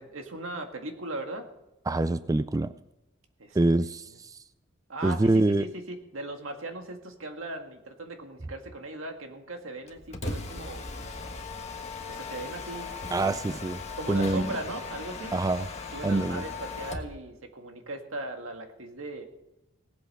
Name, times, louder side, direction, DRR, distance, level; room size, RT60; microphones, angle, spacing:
voice 1, 0.0-1.5 3.4-3.6 4.9-10.8 11.3-11.5 12.1-13.3 14.0-15.3 15.9-19.2, right 2 dB, 85° right, 4 dB, 1.9 m, -38 dB
voice 2, 1.9-2.7 3.5-4.4 5.0-5.7 13.1-13.8 14.1-14.5 15.3-15.7 16.0-16.4, right 2 dB, 15° right, 14 dB, 0.3 m, -25 dB
Mechanisms, 9.9-17.2, left 4 dB, 35° left, 1.4 m, -38 dB
17.5 x 8.2 x 5.5 m, 0.94 s
head